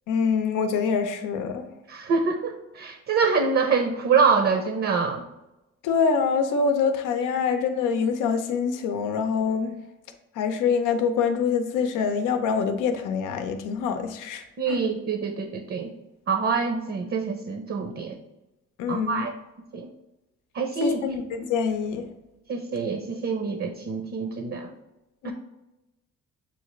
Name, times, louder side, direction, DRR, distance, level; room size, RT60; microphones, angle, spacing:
voice 1, 0.1-1.7 5.8-9.7 10.4-14.8 18.8-19.3 20.8-22.0 25.2-25.3, left 6 dB, 90° left, 6 dB, 0.6 m, -25 dB
voice 2, 1.9-5.2 14.6-15.9 16.3-18.2 18.9-19.3 19.7-19.9 20.5-21.0 22.5-24.7 25.2-25.3, right 5 dB, 50° right, 5 dB, 0.6 m, -25 dB
7.0 x 2.4 x 3.0 m, 0.96 s
cardioid pair, 90°, 30 cm